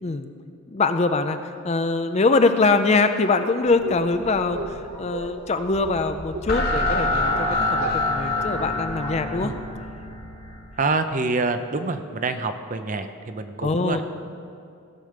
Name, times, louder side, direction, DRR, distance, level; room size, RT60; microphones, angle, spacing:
voice 1, 0.0-0.3 0.7-1.4 1.6-9.5 13.6-14.0, left 3 dB, 30° left, 9 dB, 0.4 m, -23 dB
sound 1, 3.6-9.9, right 2 dB, 85° right, 1.0 m, -36 dB
sound 2, 5.7-10.8, left 2 dB, 45° left, 1.4 m, -26 dB
voice 2, 10.8-14.0, right 3 dB, 35° right, 9 dB, 0.5 m, -26 dB
16.5 x 6.8 x 5.1 m, 2.5 s
head